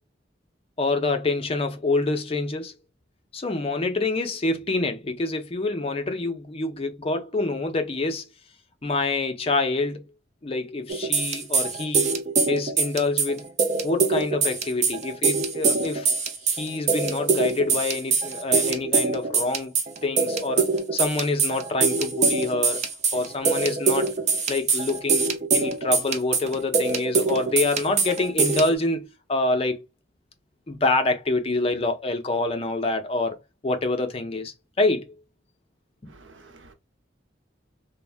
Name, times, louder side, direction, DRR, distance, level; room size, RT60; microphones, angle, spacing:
voice 1, 0.8-2.7 3.3-8.3 8.8-10.1 10.4-12.2 12.5-13.5 13.8-16.1 16.4-19.7 20.0-22.8 23.1-24.1 24.5-25.3 25.5-29.8 30.7-33.4 33.6-35.2 36.0-36.1, left 2 dB, 30° left, 0.5 m, -26 dB
sound 1, 10.9-28.7, right 4 dB, 40° right, 0.5 m, -23 dB
voice 2, 36.1-36.7, right 3 dB, 85° right, 0.7 m, -50 dB
3.2 x 2.1 x 2.4 m
head